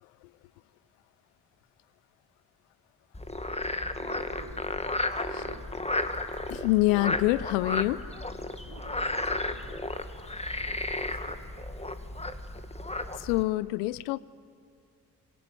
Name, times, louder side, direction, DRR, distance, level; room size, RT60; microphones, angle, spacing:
Frog, 3.1-13.4, left 2 dB, 15° left, 2.0 m, -33 dB
voice 1, 4.0-4.7 5.2-5.6 8.6-9.8 10.6-11.5, right 4 dB, 45° right, 0 dB, 4.6 m, -50 dB
voice 2, 6.5-8.1 13.2-14.2, left 20 dB, 75° left, 21 dB, 0.6 m, -26 dB
26.0 x 23.0 x 9.3 m, 2.3 s
figure-of-eight pair, 40°, 47 cm